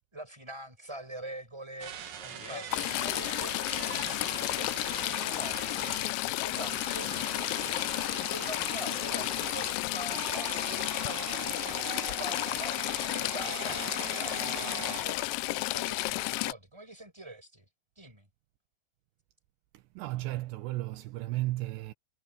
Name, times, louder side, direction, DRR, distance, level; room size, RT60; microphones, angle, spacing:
voice 1, 0.1-5.8 6.4-7.9 8.2-17.7 18.0-18.3, right 1 dB, 5° right, 6.9 m, -45 dB
sound 1, 1.8-6.1 6.5-9.7 10.1-15.3, right 8 dB, 55° right, 3.2 m, -41 dB
Fart, 1.9-9.8, left 6 dB, 45° left, 1.5 m, -51 dB
Stream / Trickle dribble, 2.7-16.5, left 20 dB, 85° left, 2.9 m, -32 dB
voice 2, 19.7-21.9, right 17 dB, 80° right, 2.8 m, -34 dB
omnidirectional pair, 5.3 m